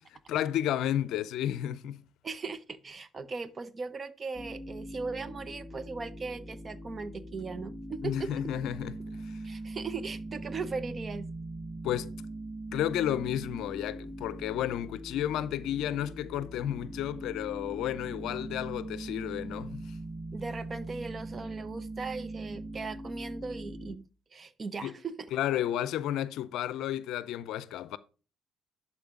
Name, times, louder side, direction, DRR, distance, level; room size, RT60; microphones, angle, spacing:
voice 1, 0.3-2.0 8.0-9.4 11.8-12.1 12.7-20.0 24.8-24.9 25.3-28.0, left 11 dB, 70° left, 0.5 m, -32 dB
voice 2, 2.2-8.3 9.4-11.3 20.3-24.1 24.3-25.3, right 4 dB, 40° right, 0.9 m, -38 dB
sound 1, 4.3-24.0, right 1 dB, 10° left, 1.0 m, -41 dB
11.5 x 4.2 x 3.7 m
hypercardioid pair, 55°, 0 cm